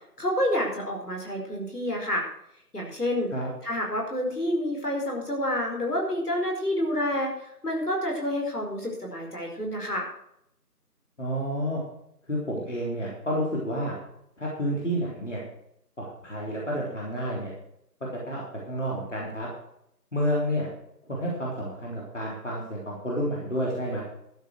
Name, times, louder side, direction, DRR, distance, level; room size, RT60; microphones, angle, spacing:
voice 1, 0.2-2.2 2.7-3.3 3.6-10.1, left 1 dB, 65° left, 0 dB, 4.8 m, -28 dB
voice 2, 11.2-11.8 12.3-14.0 14.4-15.4 16.0-17.5 18.3-18.4 18.7-19.5 20.1-20.7 21.1-24.0, equal, 45° left, -4 dB, 3.6 m, -30 dB
12.5 x 8.2 x 6.4 m, 0.76 s
figure-of-eight pair, 175°, 49 cm